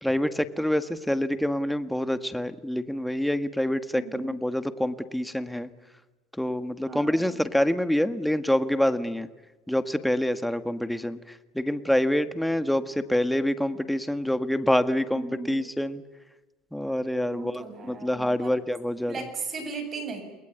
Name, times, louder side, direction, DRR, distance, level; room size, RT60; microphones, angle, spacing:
voice 1, 0.0-5.7 6.4-9.3 9.7-16.0 16.7-19.2, left 1 dB, 5° left, 10 dB, 1.7 m, -26 dB
voice 2, 3.9-4.4 6.9-7.4 15.1-15.7 17.3-18.6 19.1-20.2, right 4 dB, 30° right, 7 dB, 7.7 m, -37 dB
29.5 x 21.5 x 9.4 m, 1.2 s
supercardioid pair, 125°, 0 cm